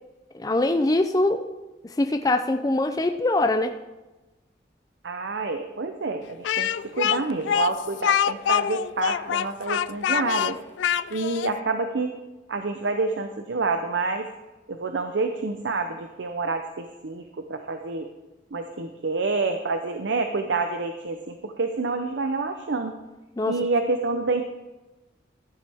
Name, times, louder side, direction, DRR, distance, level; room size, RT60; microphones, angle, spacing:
voice 1, 0.3-1.5 2.0-3.8 23.4-23.6, left 2 dB, 20° left, 7 dB, 0.4 m, -23 dB
voice 2, 5.0-10.6 11.1-12.1 12.5-14.3 14.7-18.1 18.5-22.9 23.5-24.4, right 3 dB, 85° right, 6 dB, 0.7 m, -28 dB
Speech, 6.4-11.5, left 9 dB, 90° left, 0.3 m, -25 dB
14.5 x 10.5 x 3.5 m, 1.1 s
head